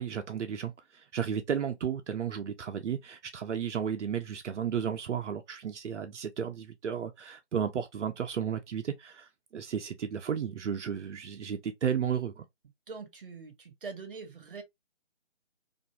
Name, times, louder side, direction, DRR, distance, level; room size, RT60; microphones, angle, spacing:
voice 1, 0.0-12.4, right 8 dB, 80° right, 0.5 m, -33 dB
voice 2, 12.9-14.6, right 4 dB, 50° right, 0.8 m, -43 dB
2.5 x 2.3 x 2.8 m
figure-of-eight pair, 165°, 35 cm